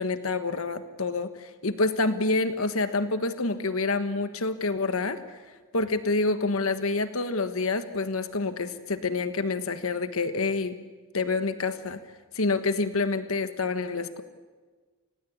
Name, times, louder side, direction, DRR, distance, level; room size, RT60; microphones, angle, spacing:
voice 1, 0.0-5.2 5.7-10.7 11.1-12.0 12.3-14.2, left 3 dB, 80° left, 10 dB, 1.4 m, -27 dB
29.5 x 17.0 x 9.6 m, 1.4 s
head